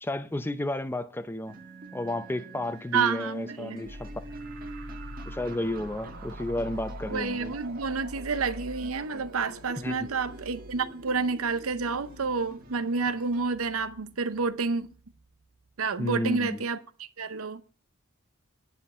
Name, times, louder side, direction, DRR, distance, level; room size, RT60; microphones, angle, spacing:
voice 1, 0.0-1.6 1.9-4.1 5.3-7.5 9.8-10.1 16.0-16.6, left 1 dB, 10° left, 0.5 m, -32 dB
sound 1, 1.5-13.4, right 2 dB, 45° right, 1.6 m, -48 dB
voice 2, 2.9-3.8 7.1-14.9 15.8-16.8 17.2-17.6, right 4 dB, 90° right, 0.8 m, -29 dB
sound 2, 3.8-15.2, equal, 60° right, 1.6 m, -44 dB
10.0 x 5.2 x 6.7 m
head